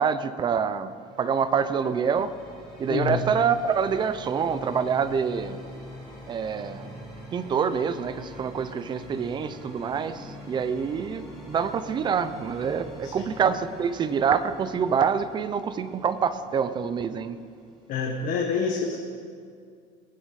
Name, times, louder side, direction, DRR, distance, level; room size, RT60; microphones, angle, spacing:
voice 1, 0.0-2.3 2.8-5.6 6.3-6.9 7.3-17.4, right 6 dB, 25° right, 12 dB, 0.7 m, -26 dB
sound 1, 0.6-18.4, left 1 dB, ahead, 4.4 m, -45 dB
voice 2, 2.9-3.2 13.0-13.2 17.9-19.0, left 5 dB, 50° left, 1 dB, 1.5 m, -27 dB
19.5 x 9.7 x 5.8 m, 2.2 s
cardioid pair, 155°, 18 cm